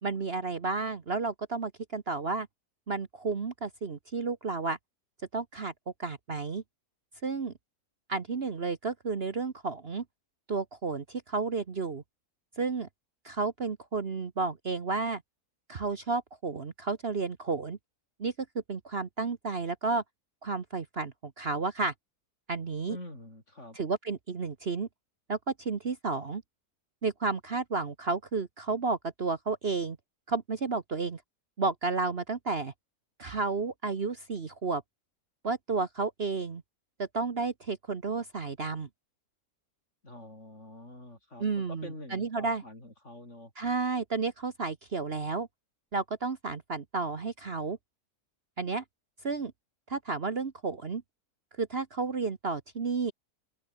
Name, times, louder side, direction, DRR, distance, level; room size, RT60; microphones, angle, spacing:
voice 1, 0.0-2.5 2.9-4.8 5.3-5.7 6.0-6.6 7.2-7.5 8.1-10.0 10.5-12.0 12.6-12.9 13.2-15.2 15.7-17.8 18.2-18.3 18.7-20.0 20.4-21.9 22.5-23.0 23.7-24.9 25.3-26.4 27.0-30.0 30.3-31.2 31.6-32.7 33.2-34.8 35.4-36.6 37.0-38.9 41.4-42.6 43.6-45.5 45.9-47.8 48.6-48.8 49.2-49.5 49.9-51.0 51.6-53.1, right 4 dB, 40° right, 1.4 m, -32 dB
voice 2, 22.9-23.8 40.0-43.5, left 1 dB, 50° left, 8.3 m, -46 dB
open air
omnidirectional pair, 1.6 m